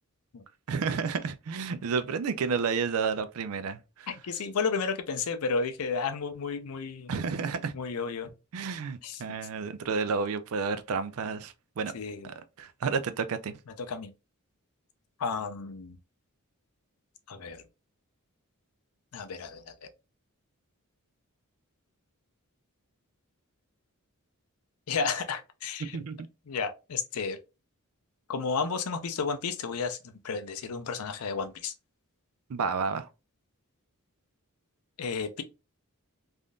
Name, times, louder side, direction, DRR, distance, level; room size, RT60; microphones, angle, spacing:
voice 1, 0.7-4.1 7.1-7.7 8.5-11.9 12.2-13.5 25.8-26.3 32.5-33.1, right 5 dB, 70° right, 0.4 m, -31 dB
voice 2, 4.1-7.1 7.7-8.3 9.0-9.2 11.9-12.3 13.7-14.1 15.2-16.0 17.3-17.6 19.1-19.9 24.9-26.0 26.5-27.4 28.3-31.7 35.0-35.4, left 5 dB, 75° left, 0.5 m, -32 dB
3.5 x 2.6 x 2.2 m
head